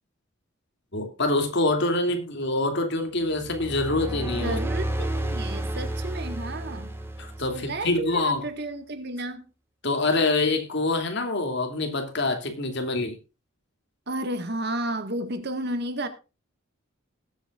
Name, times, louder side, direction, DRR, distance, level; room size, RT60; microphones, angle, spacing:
voice 1, 0.9-4.6 7.2-8.4 9.8-13.2, left 2 dB, 55° left, 2.8 m, -25 dB
sound 1, 3.3-8.0, right 1 dB, 10° right, 1.7 m, -31 dB
voice 2, 4.4-6.9 7.5-9.5 14.1-16.1, right 1 dB, 50° right, 1.8 m, -32 dB
20.5 x 8.4 x 2.5 m
head